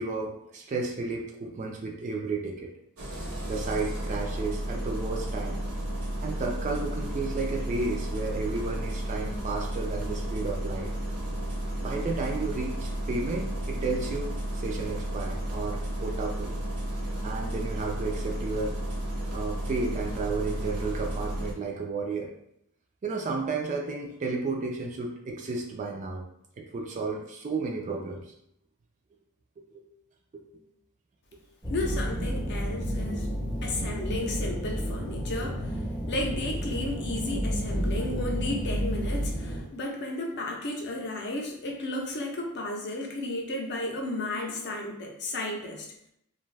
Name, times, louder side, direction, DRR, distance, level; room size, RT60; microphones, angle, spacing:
voice 1, 0.0-2.7 3.4-5.6 6.2-10.9 11.3-11.4 11.8-16.6 17.2-18.9 19.3-22.3 23.0-26.3 26.6-28.3 29.6-29.9 30.3-30.6 33.3-33.4 35.4-35.6, right 3 dB, 35° right, 0 dB, 0.3 m, -33 dB
Engine starting, 3.0-21.5, right 1 dB, 75° right, 0.8 m, -33 dB
sound 1, 31.6-39.6, equal, 10° left, 0.6 m, -31 dB
voice 2, 31.7-33.3 33.6-35.7 36.1-45.9, left 2 dB, 50° left, 1 dB, 0.5 m, -33 dB
2.5 x 2.3 x 3.2 m, 0.76 s
head